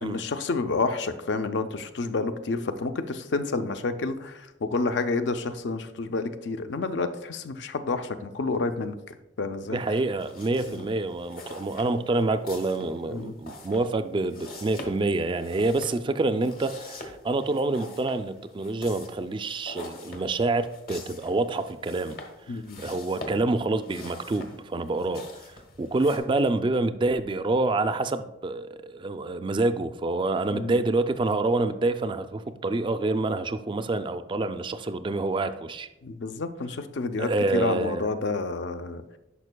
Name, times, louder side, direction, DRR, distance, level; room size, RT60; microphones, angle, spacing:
voice 1, 0.0-9.0 9.4-9.8 10.7-10.8 13.1-13.3 22.5-22.8 30.5-30.8 36.0-39.0, left 3 dB, 70° left, 9 dB, 0.5 m, -29 dB
voice 2, 9.7-22.2 22.5-25.2 25.8-35.9 37.2-38.0, right 2 dB, 25° right, 11 dB, 0.3 m, -27 dB
sound 1, 10.1-26.2, left 2 dB, 50° left, 1.0 m, -44 dB
11.0 x 5.3 x 2.2 m, 0.95 s
head